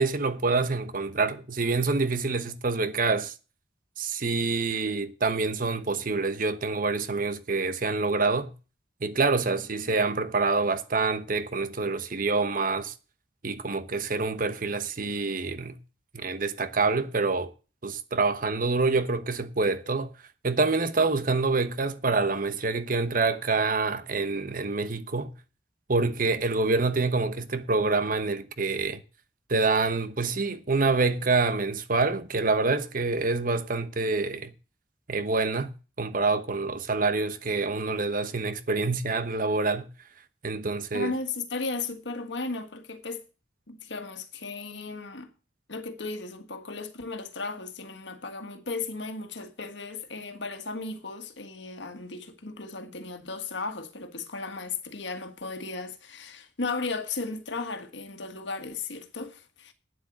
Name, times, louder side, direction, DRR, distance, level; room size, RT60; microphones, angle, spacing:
voice 1, 0.0-3.3 4.0-8.5 9.0-12.9 13.4-15.8 16.1-17.5 17.8-20.1 20.4-25.3 25.9-29.0 29.5-34.5 35.1-39.9 40.4-41.1, right 3 dB, 50° right, 1.0 m, -26 dB
voice 2, 40.9-43.2 43.7-45.3 45.7-59.7, left 3 dB, 80° left, 1.6 m, -35 dB
9.4 x 7.9 x 7.5 m
head